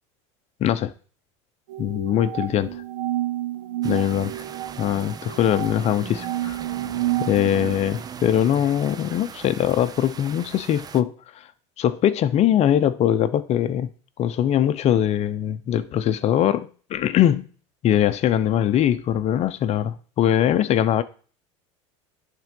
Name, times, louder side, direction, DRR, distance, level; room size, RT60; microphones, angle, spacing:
voice 1, 0.6-0.9 1.8-2.8 3.8-4.3 4.8-6.6 7.2-11.4 11.8-13.9 14.2-17.5 17.8-21.0, left 10 dB, 45° left, 0.8 m, -22 dB
sound 1, 1.7-7.8, right 14 dB, 75° right, 0.9 m, -30 dB
sound 2, 3.8-11.0, right 7 dB, 25° right, 0.5 m, -39 dB
10.5 x 3.8 x 5.3 m
supercardioid pair, 100°, 16 cm